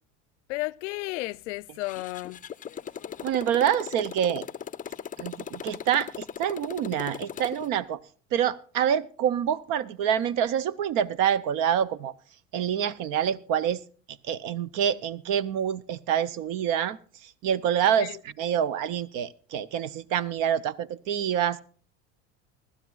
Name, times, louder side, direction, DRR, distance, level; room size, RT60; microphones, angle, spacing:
voice 1, 0.5-2.4 18.0-18.2, left 20 dB, 90° left, 0.5 m, -33 dB
Motorcycle, 1.8-7.7, left 8 dB, 25° left, 0.5 m, -39 dB
voice 2, 3.2-4.5 5.2-8.0 8.3-12.1 12.5-13.8 14.3-17.0 17.2-18.1 18.4-21.6, right 9 dB, 65° right, 0.7 m, -26 dB
24.5 x 12.5 x 2.4 m
supercardioid pair, 95°, 35 cm